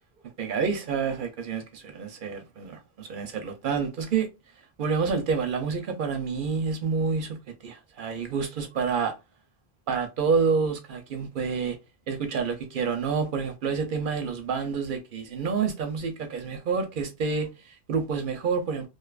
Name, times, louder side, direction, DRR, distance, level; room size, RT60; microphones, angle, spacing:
voice 1, 0.4-4.3 4.8-7.4 7.6-9.1 9.9-11.8 12.1-18.9, right 5 dB, 60° right, 0.6 m, -28 dB
2.5 x 2.3 x 2.3 m
omnidirectional pair, 1.0 m